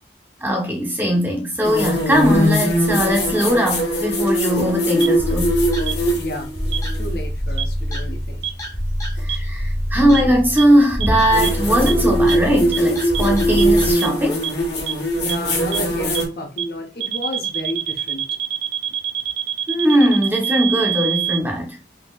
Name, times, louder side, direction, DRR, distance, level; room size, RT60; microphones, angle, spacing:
voice 1, 0.4-5.5 9.2-14.4 19.7-21.8, equal, 10° right, 0.8 m, -19 dB
sound 1, 1.6-7.1 9.2-9.3 11.3-16.3, equal, 75° left, 1.4 m, -21 dB
sound 2, 5.0-5.1 5.9-6.0 6.7-6.8 7.6-7.7 8.4-8.5 9.3-9.4 10.1-10.2 10.6-10.7 11.0-11.1 11.4-11.5 11.9-12.0 12.3-12.4 12.7-12.8 13.1-13.2 13.6-13.7 14.0-14.1 14.4-14.5 14.9-15.0 15.3-15.4 15.7-15.8 16.1-16.2 16.6-16.7 17.0-21.4, right 10 dB, 70° right, 0.4 m, -24 dB
sound 3, 5.2-13.9, equal, 20° left, 0.8 m, -25 dB
voice 2, 6.1-6.5 6.9-8.5 15.2-18.2, equal, 60° left, 0.8 m, -31 dB
3.9 x 2.8 x 2.3 m
head